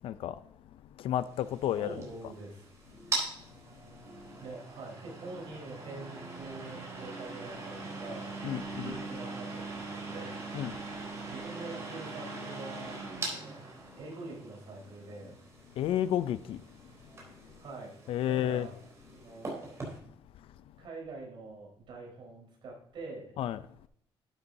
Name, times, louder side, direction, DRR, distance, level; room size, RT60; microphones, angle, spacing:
voice 1, 0.0-0.4 0.7-2.1 4.3-4.4 8.4-9.0 10.5-10.8 11.2-11.3 15.8-16.9 17.5-17.6 18.1-18.7 20.4-20.5 23.4-23.6, left 11 dB, 75° left, 0.4 m, -32 dB
sound 1, 1.3-20.0, right 3 dB, 30° right, 3.7 m, -41 dB
voice 2, 1.8-2.7 4.4-10.6 11.3-13.6 14.0-15.3 17.6-17.9 18.3-18.7 19.1-19.6 20.8-23.4, right 3 dB, 60° right, 4.2 m, -45 dB
11.5 x 8.2 x 2.7 m
cardioid pair, 160°, 10 cm